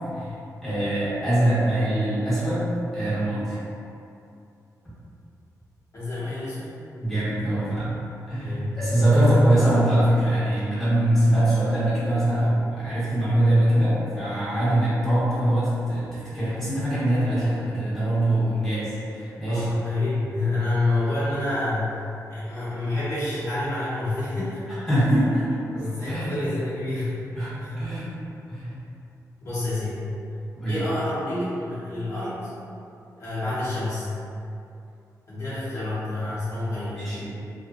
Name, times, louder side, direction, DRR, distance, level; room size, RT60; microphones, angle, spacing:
voice 1, 0.6-3.6 7.0-7.9 8.3-19.7 24.9-25.5 26.1-26.4 27.3-28.1 28.5-28.7 30.6-30.8 35.5-36.0 36.9-37.3, right 1 dB, ahead, -13 dB, 1.3 m, -23 dB
voice 2, 5.9-6.7 8.4-9.3 19.5-24.6 25.7-27.1 27.6-27.7 29.4-30.0 30.7-32.5 33.2-34.1 35.3-37.2, left 2 dB, 50° left, -12 dB, 1.1 m, -28 dB
2.8 x 2.5 x 2.5 m, 2.6 s
wide cardioid pair, 100°, 7 cm